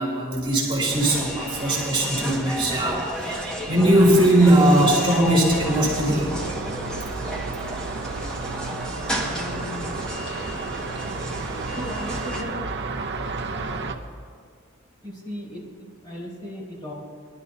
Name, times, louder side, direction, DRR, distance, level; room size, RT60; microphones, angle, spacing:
voice 1, 0.0-6.3, right 1 dB, 25° right, -5 dB, 2.8 m, -20 dB
sound 1, 0.9-12.4, equal, 5° left, 1.7 m, -33 dB
sound 2, 5.5-14.0, right 3 dB, 55° right, 0.8 m, -32 dB
voice 2, 9.3-10.0 11.7-12.7 15.0-16.9, equal, 25° left, -6 dB, 3.9 m, -36 dB
21.5 x 12.5 x 2.8 m, 2.2 s
head